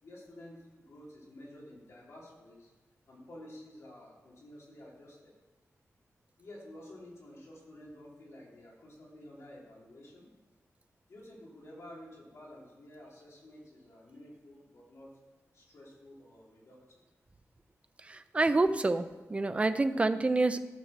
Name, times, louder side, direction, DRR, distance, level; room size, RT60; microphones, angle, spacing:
voice 1, 0.0-2.7 3.1-5.3 6.4-10.3 11.1-15.2 15.5-17.0, left 1 dB, 60° left, -3 dB, 3.1 m, -51 dB
voice 2, 18.0-20.7, right 2 dB, 20° right, 10 dB, 0.5 m, -28 dB
13.5 x 6.4 x 6.5 m, 1.2 s
wide cardioid pair, 160°, 6 cm